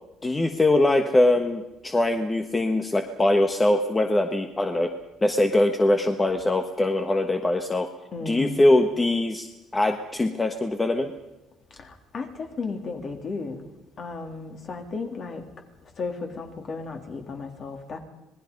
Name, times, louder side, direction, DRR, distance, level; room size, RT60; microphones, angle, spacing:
voice 1, 0.2-4.9 5.2-7.9 8.3-9.5 9.7-11.1, left 1 dB, 15° left, 6 dB, 1.3 m, -22 dB
voice 2, 8.1-8.6 11.8-13.6 14.0-15.4 16.0-18.0, left 4 dB, 40° left, 4 dB, 3.3 m, -34 dB
26.5 x 20.0 x 5.4 m, 1.0 s
cardioid pair, 140°, 0 cm